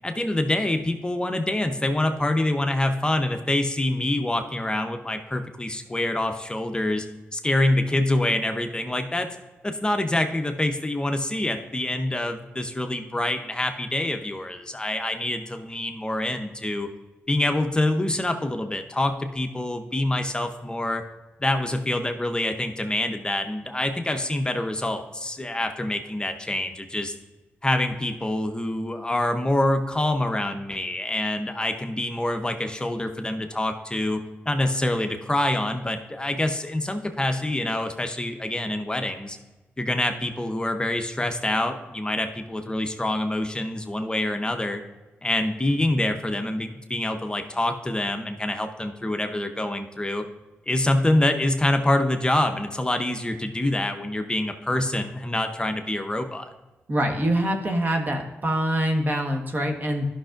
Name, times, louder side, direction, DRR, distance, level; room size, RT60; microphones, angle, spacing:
voice 1, 0.0-7.1 7.3-9.3 9.6-16.9 17.3-21.0 21.4-27.1 27.6-39.4 39.8-44.8 45.2-50.2 50.7-56.5, left 1 dB, 20° left, 6 dB, 0.7 m, -26 dB
voice 2, 56.9-60.1, right 1 dB, 40° right, 3 dB, 1.3 m, -24 dB
11.0 x 6.0 x 2.5 m, 1.2 s
cardioid pair, 60°, 5 cm